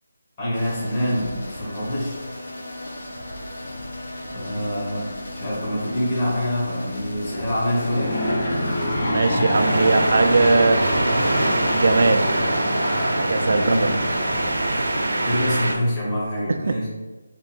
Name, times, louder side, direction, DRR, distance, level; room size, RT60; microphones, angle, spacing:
voice 1, 0.4-2.2 4.3-8.1 9.3-9.5 13.5-13.9 15.1-16.9, equal, 20° left, -7 dB, 1.0 m, -26 dB
sound 1, 0.5-15.4, left 1 dB, 70° left, 1.0 m, -35 dB
Aircraft / Engine, 7.3-15.3, equal, 45° left, 1.1 m, -27 dB
voice 2, 9.0-10.8 11.7-12.3 13.2-13.8 16.5-16.8, right 3 dB, 55° right, 7 dB, 0.3 m, -20 dB
sound 2, 9.5-15.7, right 1 dB, 85° right, 0.6 m, -23 dB
3.0 x 2.6 x 4.2 m, 1.3 s
figure-of-eight pair, 170°, 0 cm